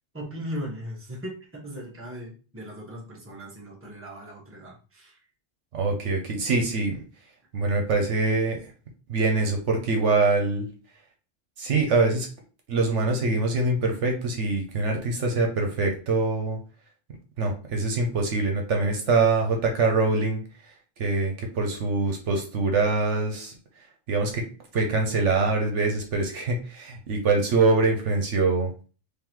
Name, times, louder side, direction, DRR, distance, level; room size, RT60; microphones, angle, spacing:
voice 1, 0.1-5.2, equal, 10° right, -2 dB, 1.1 m, -38 dB
voice 2, 5.7-7.0 7.5-8.6 9.1-10.7 11.6-12.3 12.7-16.6 17.4-20.4 21.0-23.6 24.1-24.4 24.7-28.7, right 3 dB, 70° right, 3 dB, 1.1 m, -24 dB
3.8 x 3.4 x 3.0 m, 0.36 s
omnidirectional pair, 1.3 m